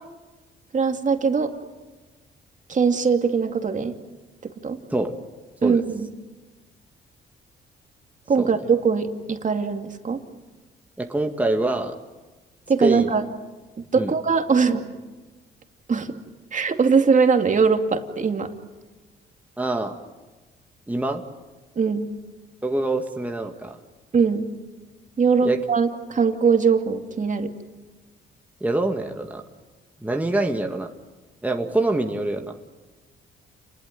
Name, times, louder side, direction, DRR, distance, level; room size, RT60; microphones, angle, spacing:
voice 1, 0.7-1.5 2.7-3.9 4.4-4.8 5.6-6.1 8.3-10.2 12.7-13.2 13.9-15.0 15.9-16.2 16.5-18.5 21.8-22.1 24.1-24.5 25.2-27.5, right 5 dB, 40° right, 5 dB, 2.5 m, -21 dB
voice 2, 11.0-12.0 12.8-13.1 14.0-14.1 19.6-20.0 20.9-21.2 22.6-23.8 25.4-25.6 28.6-29.4 30.0-30.9 31.4-32.5, right 2 dB, 10° right, 3 dB, 2.0 m, -25 dB
29.0 x 20.5 x 9.4 m, 1.2 s
cardioid pair, 90°, 20 cm